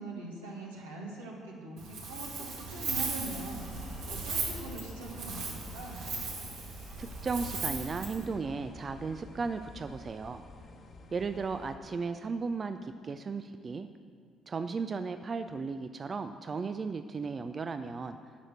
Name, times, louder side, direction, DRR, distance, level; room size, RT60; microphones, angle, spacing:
voice 1, 0.0-6.1, right 2 dB, 85° right, -3 dB, 1.6 m, -43 dB
Wind, 1.8-8.2, right 4 dB, 65° right, 1.9 m, -37 dB
sound 1, 3.6-11.8, left 2 dB, 45° left, 1.2 m, -50 dB
voice 2, 7.0-10.4 11.1-13.9 14.5-18.2, right 4 dB, 35° right, 9 dB, 0.4 m, -35 dB
9.0 x 6.5 x 7.9 m, 2.2 s
figure-of-eight pair, 50°, 0 cm